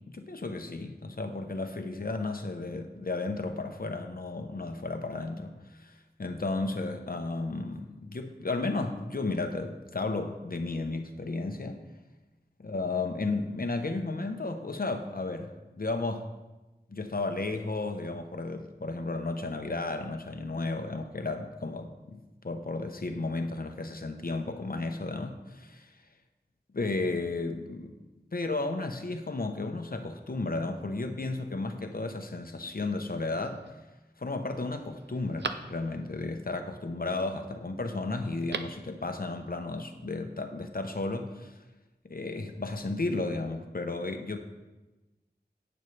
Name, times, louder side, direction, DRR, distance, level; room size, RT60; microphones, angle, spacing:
voice 1, 0.1-11.8 12.6-16.3 16.9-26.1 26.7-27.9 28.3-33.8 34.2-41.6 42.0-44.4, left 3 dB, 55° left, 5 dB, 0.8 m, -33 dB
Telephone, 33.1-33.7 34.2-34.3 34.7-36.2 38.2-38.9 39.2-39.3, right 4 dB, 80° right, 0.6 m, -40 dB
10.5 x 9.0 x 3.3 m, 1.1 s
wide cardioid pair, 50°, 18 cm